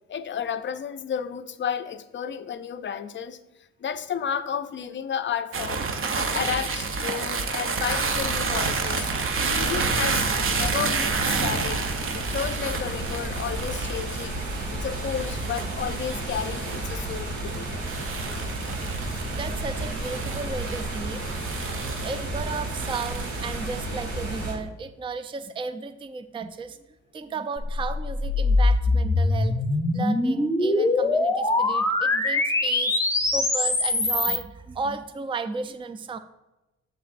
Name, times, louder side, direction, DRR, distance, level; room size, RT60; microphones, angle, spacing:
voice 1, 0.1-3.4 3.8-5.9 6.2-9.1 9.5-11.8 12.1-14.4 14.7-17.7, left 8 dB, 40° left, 11 dB, 0.5 m, -32 dB
sound 1, 5.5-23.8, right 4 dB, 45° right, 0.8 m, -30 dB
sound 2, 7.8-24.5, right 2 dB, 70° right, 2.3 m, -32 dB
voice 2, 19.0-21.5 22.0-26.8 27.1-29.7 29.9-33.0 33.3-36.2, right 4 dB, 15° right, 11 dB, 0.4 m, -34 dB
sound 3, 27.6-34.4, left 2 dB, 10° left, 0.8 m, -23 dB
8.0 x 7.0 x 2.6 m, 1.0 s
cardioid pair, 90°, 30 cm